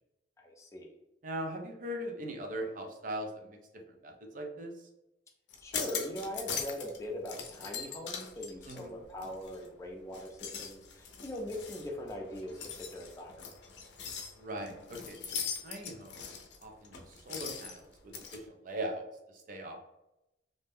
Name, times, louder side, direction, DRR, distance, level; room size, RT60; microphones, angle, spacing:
voice 1, 0.4-0.9 5.6-13.4, equal, 15° left, 0 dB, 0.5 m, -41 dB
voice 2, 1.2-3.6 3.9-4.9 8.7-9.0 14.4-15.4 15.6-19.8, right 1 dB, 50° right, 3 dB, 0.5 m, -40 dB
sound 1, 5.5-7.0 7.3-9.7 10.1-18.4, left 6 dB, 80° left, 0.5 m, -41 dB
2.6 x 2.2 x 3.4 m, 0.91 s
head